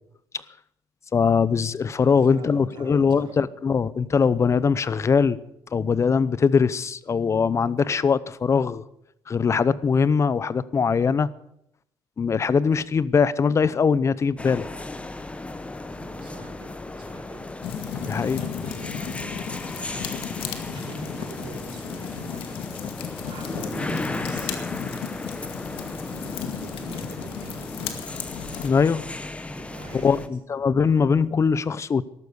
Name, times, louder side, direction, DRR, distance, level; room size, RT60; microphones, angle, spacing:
voice 1, 1.1-5.4 5.7-8.8 9.3-11.3 12.2-14.6 18.1-18.4 28.6-29.1 29.9-32.0, left 5 dB, 30° left, 0.7 m, -21 dB
voice 2, 2.0-3.4 15.8-17.4 17.8-22.6 23.3-24.7 25.5-28.1 29.4-30.3, right 2 dB, 60° right, 4.9 m, -43 dB
sound 1, 14.4-30.3, left 2 dB, 15° left, 1.1 m, -35 dB
sound 2, 17.6-28.7, left 8 dB, 75° left, 2.1 m, -35 dB
14.0 x 11.5 x 8.1 m
cardioid pair, 115°, 9 cm